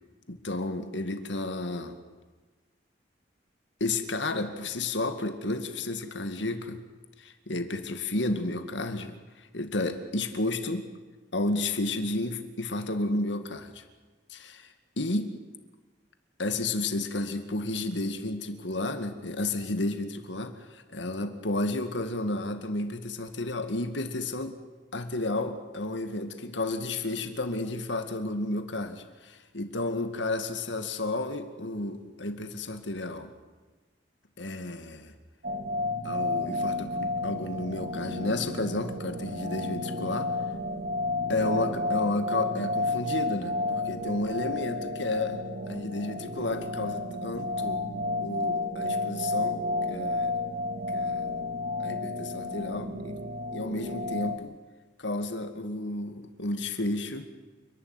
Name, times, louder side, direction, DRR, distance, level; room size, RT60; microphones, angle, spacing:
voice 1, 0.3-2.0 3.8-6.8 7.2-10.9 11.3-13.8 14.3-15.4 16.4-24.6 24.9-33.3 34.4-35.1 36.0-40.3 41.3-47.8 48.2-50.4 50.9-51.3 51.8-53.2 53.5-54.6 55.0-57.3, left 2 dB, 75° left, 8 dB, 2.1 m, -32 dB
sound 1, 35.4-54.4, left 2 dB, 55° right, 1.3 m, -31 dB
29.5 x 12.0 x 9.7 m, 1.3 s
head